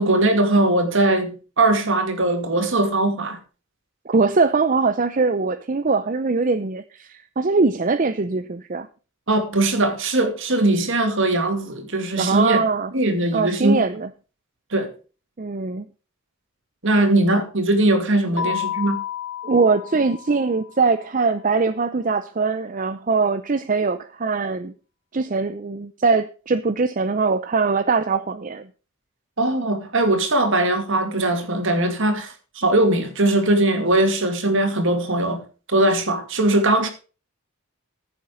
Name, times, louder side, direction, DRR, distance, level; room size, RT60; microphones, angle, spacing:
voice 1, 0.0-3.4 9.3-12.6 12.9-13.8 14.7-14.9 16.8-19.0 29.4-35.4 35.7-36.9, right 2 dB, 60° right, 2.4 m, -20 dB
voice 2, 4.1-8.9 12.2-12.9 13.3-14.1 15.4-15.9 18.3-18.6 19.4-24.7 25.1-28.7, right 4 dB, 35° right, 0.6 m, -22 dB
Keyboard (musical), 18.4-20.9, left 10 dB, 55° left, 1.6 m, -31 dB
15.0 x 7.2 x 5.1 m
head